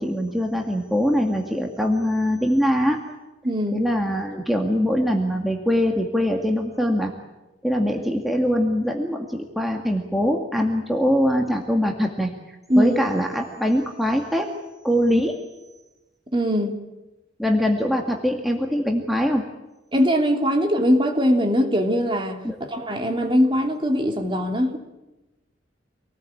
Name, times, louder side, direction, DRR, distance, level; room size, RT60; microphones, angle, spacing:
voice 1, 0.0-3.0 3.7-7.1 7.6-12.3 12.8-14.5 14.8-15.4 17.4-19.4 22.4-22.6, equal, ahead, 1 dB, 2.1 m, -22 dB
voice 2, 3.4-3.8 12.7-13.0 16.3-16.7 19.9-24.8, equal, 25° right, 3 dB, 3.2 m, -21 dB
27.0 x 19.0 x 8.7 m, 1.0 s
head